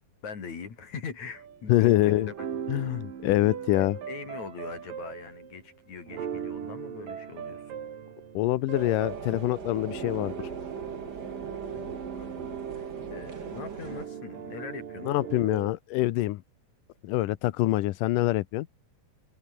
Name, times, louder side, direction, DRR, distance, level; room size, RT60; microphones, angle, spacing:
voice 1, 0.2-2.3 4.1-7.7 11.7-15.1, left 5 dB, 50° left, 5.1 m, -42 dB
sound 1, 1.3-15.7, right 8 dB, 65° right, 4.2 m, -39 dB
voice 2, 1.7-2.3 2.7-4.0 8.3-10.3 15.0-16.4 17.0-18.7, left 17 dB, 75° left, 2.2 m, -25 dB
sound 2, 8.7-14.1, right 5 dB, 30° right, 2.3 m, -41 dB
omnidirectional pair, 4.3 m